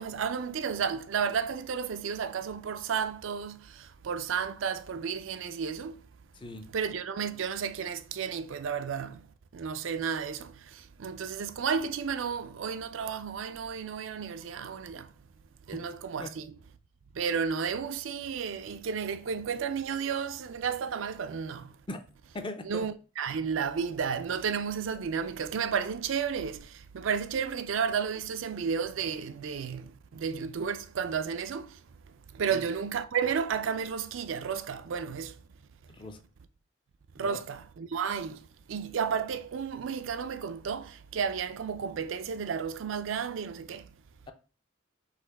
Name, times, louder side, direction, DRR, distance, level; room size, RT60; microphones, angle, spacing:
voice 1, 0.0-6.0 6.7-9.2 9.5-15.1 15.7-16.5 17.1-21.7 22.6-31.8 32.3-35.4 37.2-38.4 38.7-43.9, right 6 dB, 75° right, 0.4 m, -32 dB
voice 2, 6.4-6.7 15.7-15.8 16.2-16.3 21.9-22.0 22.3-22.9 32.5-32.6 35.9-36.2 37.2-37.4, left 1 dB, 25° left, 0.5 m, -39 dB
4.1 x 3.0 x 4.0 m
head